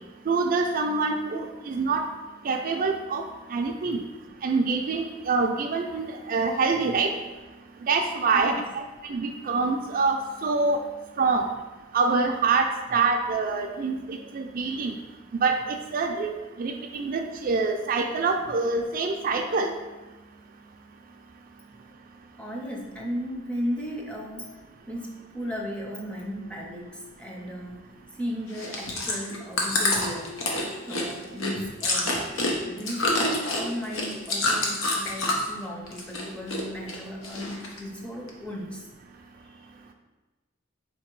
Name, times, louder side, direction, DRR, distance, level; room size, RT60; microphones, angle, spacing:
voice 1, 0.3-2.0 2.4-3.2 3.5-4.0 4.4-7.1 7.9-8.8 9.1-10.8 11.2-11.5 11.9-14.9 15.4-16.3 16.6-19.7, right 4 dB, 45° right, 3 dB, 0.3 m, -25 dB
voice 2, 22.4-30.4 30.9-32.3 32.6-38.9 39.4-39.7, equal, 5° left, -1 dB, 0.6 m, -35 dB
Chewing mastication, 28.5-35.6 35.9-36.6 36.9-37.8 38.3-38.4, left 2 dB, 85° left, 0.8 m, -27 dB
3.8 x 2.9 x 4.5 m, 1.2 s
head